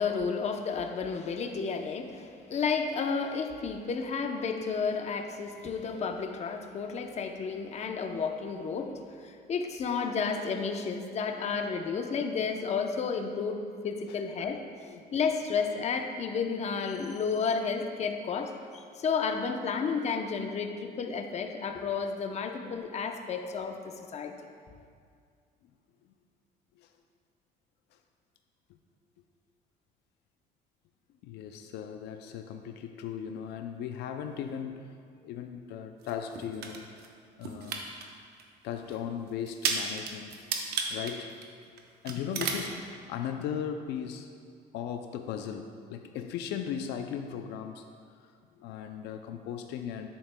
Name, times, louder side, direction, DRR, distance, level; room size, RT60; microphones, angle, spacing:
voice 1, 0.0-8.9 9.2-14.6 15.1-24.3, left 5 dB, 40° left, 5 dB, 0.7 m, -32 dB
voice 2, 31.2-35.0 35.2-36.9 37.4-37.9 38.6-40.4 40.9-41.4 41.7-44.3 44.7-47.8 48.6-50.1, left 8 dB, 85° left, 6 dB, 0.4 m, -37 dB
sound 1, 36.0-37.1 37.4-38.0 38.4-38.5 38.9-39.0 39.5-41.8 42.0-42.7, right 5 dB, 70° right, 0.9 m, -33 dB
10.0 x 8.6 x 2.2 m, 2.2 s
cardioid pair, 110°, 17 cm